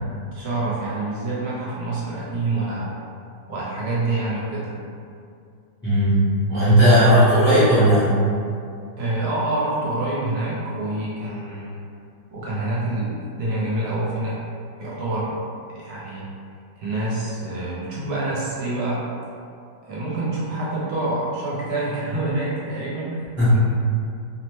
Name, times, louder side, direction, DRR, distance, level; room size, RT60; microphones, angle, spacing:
voice 1, 0.3-2.9 3.5-4.8 9.0-11.8 12.3-14.4 14.8-15.4 15.7-16.3 16.8-19.1 19.9-23.6, right 2 dB, 75° right, -7 dB, 1.1 m, -27 dB
voice 2, 5.8-6.2 6.5-8.1 23.4-23.5, equal, 10° left, -13 dB, 0.5 m, -15 dB
2.9 x 2.1 x 3.0 m, 2.4 s
omnidirectional pair, 1.8 m